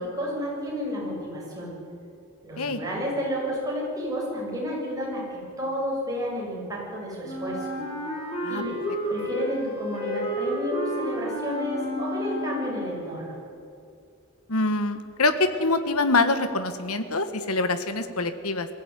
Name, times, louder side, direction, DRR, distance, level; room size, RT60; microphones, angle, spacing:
voice 1, 0.0-1.7 2.4-7.7 8.5-8.7 9.1-13.4, equal, 15° right, -4 dB, 7.3 m, -31 dB
Wind instrument woodwind instrument, 7.2-13.0, equal, 30° left, 6.2 m, -31 dB
voice 2, 14.5-18.7, left 2 dB, 90° left, 10 dB, 1.5 m, -25 dB
21.5 x 16.0 x 9.8 m, 2.5 s
head